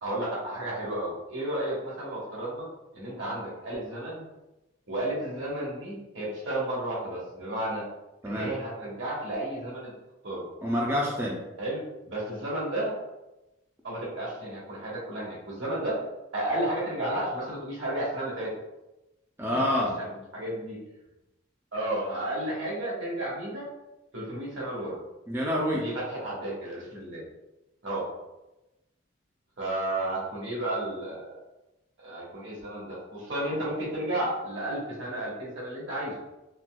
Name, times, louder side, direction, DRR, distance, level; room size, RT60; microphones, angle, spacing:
voice 1, 0.0-2.7 2.9-4.3 4.9-7.9 8.2-9.9 10.2-10.5 11.6-13.0 13.8-16.0 16.3-18.5 19.5-20.1 20.3-20.8 21.7-23.6 24.1-25.0 25.7-27.3 27.8-28.1 29.6-31.3 32.0-36.1, right 1 dB, 75° right, -5 dB, 1.3 m, -32 dB
voice 2, 10.6-11.4 19.4-20.0 25.3-25.8, equal, 15° right, -4 dB, 0.4 m, -27 dB
4.0 x 2.3 x 2.3 m, 0.98 s
head